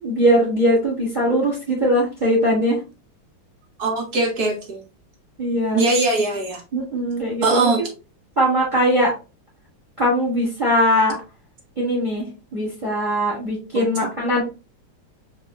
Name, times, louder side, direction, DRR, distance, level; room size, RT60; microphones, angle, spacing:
voice 1, 0.0-2.8 5.4-5.8 6.7-7.9 8.4-9.1 10.0-11.1 11.8-12.2 12.5-14.4, equal, 25° right, -4 dB, 1.5 m, -20 dB
voice 2, 3.8-4.8 5.7-6.6 7.4-7.8 13.7-13.8, right 2 dB, 55° right, 1 dB, 1.2 m, -21 dB
5.1 x 2.9 x 2.2 m, 0.31 s
omnidirectional pair, 2.3 m